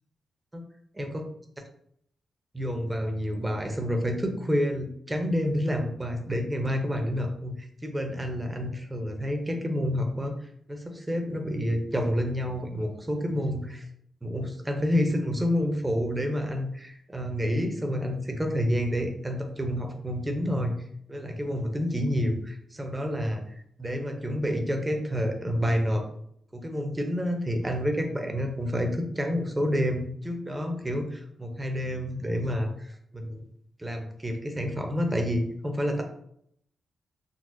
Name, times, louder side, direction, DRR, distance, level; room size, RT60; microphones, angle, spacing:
voice 1, 2.5-13.9 14.2-20.8 21.1-26.1 26.5-33.4 33.8-36.0, equal, 20° right, 3 dB, 0.7 m, -29 dB
3.9 x 2.1 x 2.5 m, 0.69 s
supercardioid pair, 55°, 0 cm